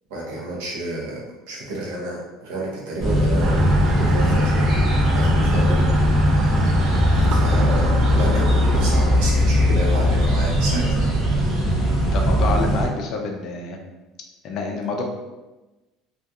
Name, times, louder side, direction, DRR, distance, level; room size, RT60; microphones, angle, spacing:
voice 1, 0.1-1.2 1.5-5.9 7.3-10.9, right 1 dB, 75° right, -3 dB, 0.8 m, -30 dB
sound 1, 3.0-12.8, equal, 25° right, 0.7 m, -19 dB
sound 2, 3.4-11.5, equal, 40° right, 0.3 m, -25 dB
voice 2, 12.0-13.8 14.4-15.0, left 3 dB, 40° left, 2 dB, 0.4 m, -27 dB
2.7 x 2.3 x 2.3 m, 1.1 s
cardioid pair, 180°, 0 cm